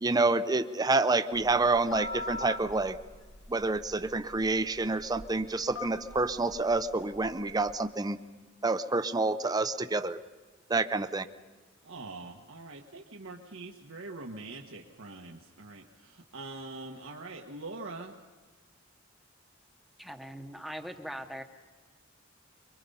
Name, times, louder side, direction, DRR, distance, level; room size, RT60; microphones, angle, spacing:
voice 1, 0.0-3.0 3.5-8.2 8.6-10.2 10.7-11.2, right 3 dB, 20° right, 11 dB, 0.6 m, -28 dB
Telephone, 1.3-7.7, left 2 dB, 85° left, 1.9 m, -44 dB
voice 2, 11.8-18.1, right 2 dB, 85° right, 0 dB, 1.3 m, -43 dB
voice 3, 20.0-21.4, equal, ahead, 6 dB, 1.1 m, -41 dB
24.5 x 23.0 x 5.5 m, 1.3 s
head